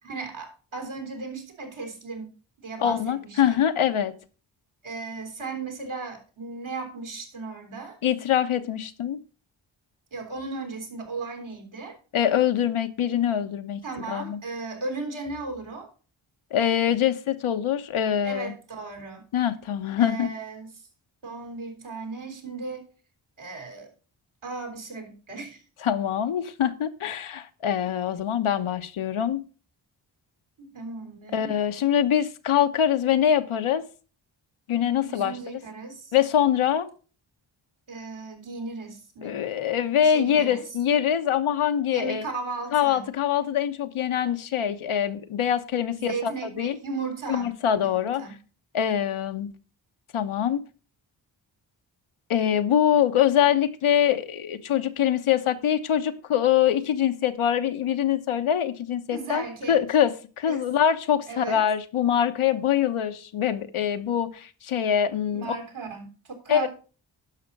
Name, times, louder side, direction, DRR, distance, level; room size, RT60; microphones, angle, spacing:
voice 1, 0.0-2.3 2.6-3.4 4.8-8.0 10.1-12.0 13.8-15.9 18.2-19.2 20.0-20.9 21.2-22.9 23.4-23.9 24.4-25.6 30.6-31.6 35.0-36.1 37.9-39.4 40.0-40.6 41.9-43.1 45.9-47.5 47.8-48.4 59.1-59.8 60.5-60.7 61.3-61.6 65.3-66.7, right 4 dB, 75° right, 4 dB, 3.4 m, -36 dB
voice 2, 2.8-4.1 8.0-9.2 12.1-13.8 14.1-14.4 16.5-18.5 19.3-20.3 25.8-29.4 31.3-33.8 34.7-35.3 36.1-36.9 39.2-42.3 42.7-46.3 46.6-46.8 47.3-48.2 48.7-49.5 50.1-50.6 52.3-60.1 60.4-65.6 66.5-66.7, left 9 dB, 85° left, 8 dB, 1.0 m, -24 dB
11.0 x 6.0 x 5.3 m, 0.37 s
cardioid pair, 40°, 48 cm